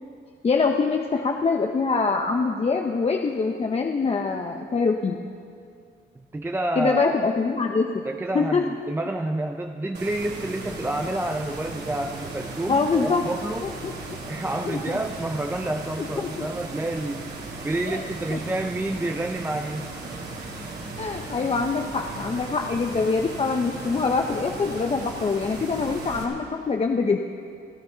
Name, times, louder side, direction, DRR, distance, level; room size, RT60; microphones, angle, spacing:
voice 1, 0.4-5.2 6.8-8.0 8.3-8.7 12.7-13.2 13.6-13.9 14.7-15.0 16.2-16.5 17.8-18.0 18.3-18.4 21.0-27.2, left 4 dB, 30° left, 3 dB, 0.7 m, -24 dB
voice 2, 6.3-7.2 8.1-13.6 14.2-17.3 17.6-19.9, right 1 dB, 10° right, 5 dB, 0.6 m, -29 dB
sound 1, 9.9-26.2, right 2 dB, 55° right, 2.9 m, -37 dB
28.0 x 9.6 x 4.0 m, 2.4 s
cardioid pair, 90°, 20 cm